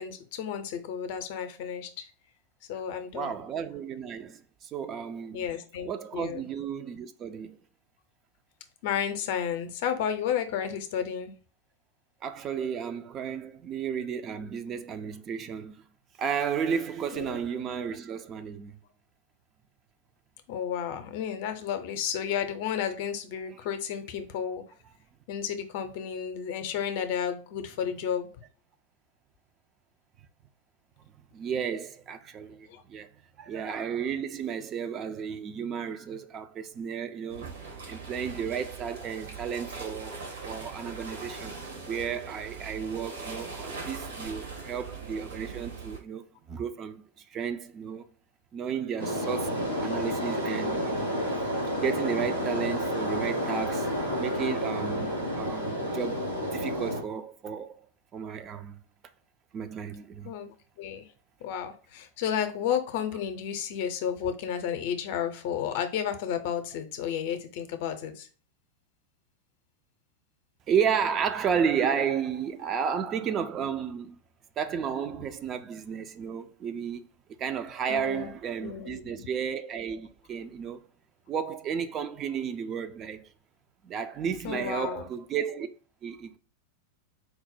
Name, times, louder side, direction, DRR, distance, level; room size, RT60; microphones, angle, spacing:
voice 1, 0.0-2.1 2.7-3.4 5.3-6.4 8.8-11.3 17.1-17.4 20.5-24.6 25.3-28.3 32.7-32.8 60.2-61.0 61.4-68.3 77.9-78.3 78.6-79.3 84.4-85.1, left 8 dB, 50° left, 0.6 m, -32 dB
voice 2, 3.1-5.5 5.8-7.6 12.2-15.8 16.2-18.8 31.3-33.1 33.4-37.5 37.9-41.5 41.9-47.0 47.3-48.0 48.5-51.2 51.8-57.8 58.1-58.8 59.5-60.4 70.7-74.2 74.6-77.1 77.4-80.8 81.3-83.3 83.8-85.7 86.0-86.4, right 7 dB, 30° right, 0.4 m, -33 dB
sound 1, 37.3-46.0, right 4 dB, 70° right, 1.2 m, -40 dB
sound 2, 49.0-57.0, equal, 85° right, 1.9 m, -30 dB
4.5 x 2.1 x 4.0 m
figure-of-eight pair, 90°, 0 cm